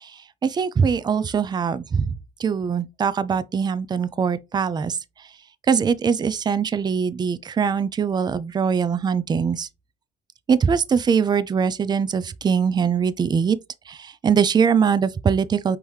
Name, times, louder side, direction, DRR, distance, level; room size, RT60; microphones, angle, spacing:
voice 1, 0.0-5.0 5.7-9.7 10.5-13.6 13.9-15.8, right 6 dB, 25° right, 0.4 m, -22 dB
5.5 x 3.0 x 3.2 m
cardioid pair, 110°, 17 cm